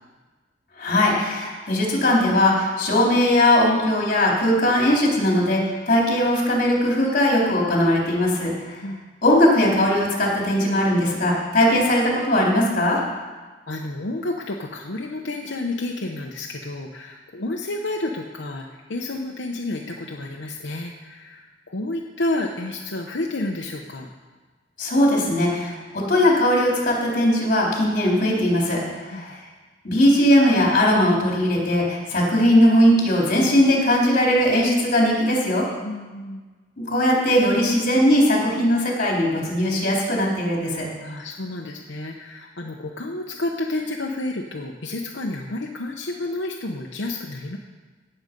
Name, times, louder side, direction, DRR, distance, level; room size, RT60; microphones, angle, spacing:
voice 1, 0.8-8.9 9.2-13.0 24.8-25.8 26.1-29.4 29.8-35.6 36.9-40.9, left 1 dB, 50° left, -3 dB, 3.7 m, -19 dB
voice 2, 13.7-24.1 29.1-29.3 35.8-36.4 41.0-47.6, left 2 dB, 80° left, 0 dB, 1.0 m, -30 dB
17.0 x 7.9 x 5.3 m, 1.4 s
head